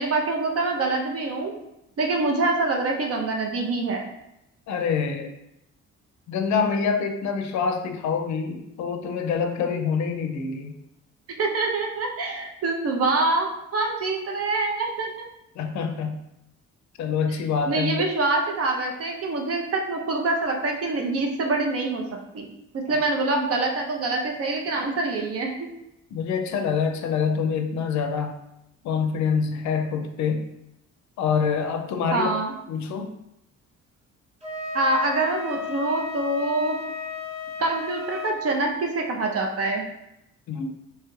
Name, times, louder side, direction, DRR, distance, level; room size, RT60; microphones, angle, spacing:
voice 1, 0.0-1.5 2.0-4.0 11.4-15.3 17.7-22.0 22.3-22.4 22.7-25.7 32.1-32.5 34.7-36.8 37.6-39.8, right 3 dB, 50° right, 1 dB, 0.6 m, -25 dB
voice 2, 4.7-5.3 6.3-10.7 15.6-16.2 17.0-18.0 22.9-23.0 26.1-28.3 28.8-30.5 31.2-32.3 32.7-33.1 40.5-40.7, left 6 dB, 65° left, 6 dB, 0.5 m, -26 dB
Wind instrument woodwind instrument, 34.4-38.4, left 5 dB, 20° right, 0.8 m, -34 dB
3.0 x 2.3 x 3.1 m, 0.86 s
cardioid pair, 90°, 30 cm